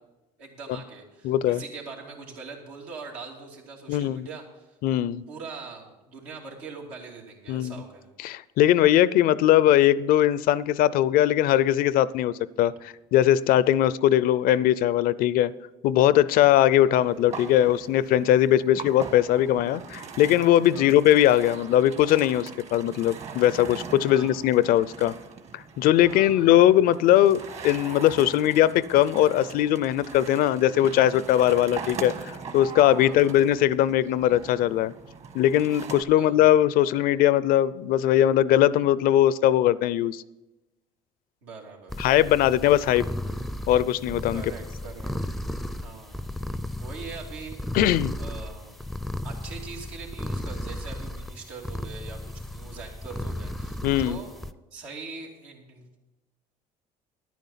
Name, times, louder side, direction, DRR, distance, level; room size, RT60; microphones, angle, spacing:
voice 1, 0.4-4.8 5.3-8.1 20.7-21.0 24.0-24.4 26.0-26.5 33.0-33.4 36.1-36.6 41.4-42.3 44.3-45.1 45.5-46.3 46.8-47.6 48.2-48.8 49.2-54.3 54.7-56.0, right 4 dB, 85° right, -1 dB, 2.7 m, -42 dB
voice 2, 1.2-1.6 3.9-4.3 4.8-5.2 7.5-7.8 8.2-15.5 15.8-25.1 25.5-34.9 35.3-40.2 42.0-43.1 43.7-44.4 47.7-48.1 53.8-54.2, left 12 dB, 65° left, 19 dB, 0.5 m, -20 dB
sound 1, 16.9-36.0, right 5 dB, 40° right, 1.5 m, -41 dB
sound 2, 41.9-54.5, left 1 dB, ahead, 0.5 m, -35 dB
10.5 x 9.3 x 5.7 m, 1.0 s
supercardioid pair, 85°, 16 cm